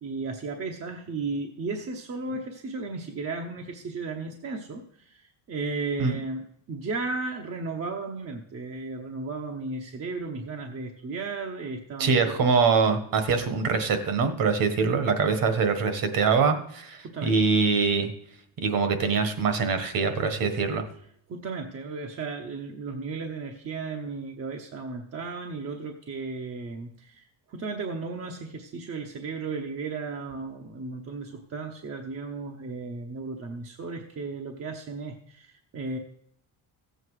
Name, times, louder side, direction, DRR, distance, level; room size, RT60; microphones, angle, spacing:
voice 1, 0.0-12.4 17.0-17.3 21.3-36.0, right 3 dB, 30° right, 2 dB, 0.9 m, -35 dB
voice 2, 12.0-18.1 18.6-20.8, right 5 dB, 45° right, 9 dB, 1.4 m, -24 dB
15.5 x 7.9 x 4.8 m, 0.70 s
cardioid pair, 175°, 46 cm